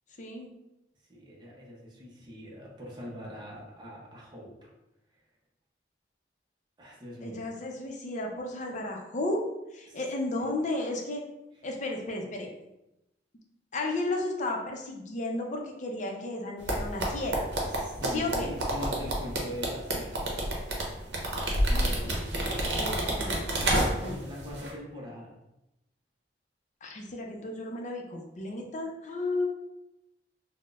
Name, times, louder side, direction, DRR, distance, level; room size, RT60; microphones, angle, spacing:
voice 1, 0.2-0.5 7.2-9.4 9.7-11.2 11.6-12.5 13.7-17.5 18.0-18.5 21.7-23.7 24.0-24.2 26.8-29.5, left 2 dB, 45° left, 1 dB, 0.5 m, -34 dB
voice 2, 1.1-4.7 6.8-7.4 9.9-10.0 10.4-10.5 17.7-20.1 23.7-25.4, left 1 dB, 25° right, -4 dB, 0.6 m, -42 dB
sound 1, 16.7-24.2 24.5-24.7, right 1 dB, 70° right, 0.7 m, -28 dB
4.2 x 2.1 x 2.4 m, 0.91 s
head